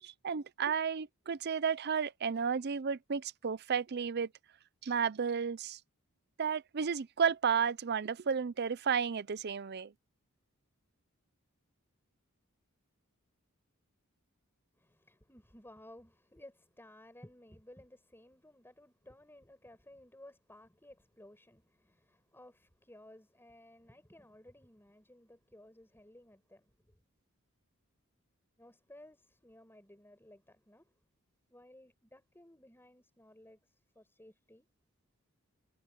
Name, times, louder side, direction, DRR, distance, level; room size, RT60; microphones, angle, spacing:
voice 1, 0.0-4.3 4.8-5.8 6.4-9.9, right 6 dB, 50° right, 0.5 m, -32 dB
voice 2, 14.7-27.0 28.6-30.9 31.5-34.7, left 1 dB, 10° left, 5.6 m, -57 dB
head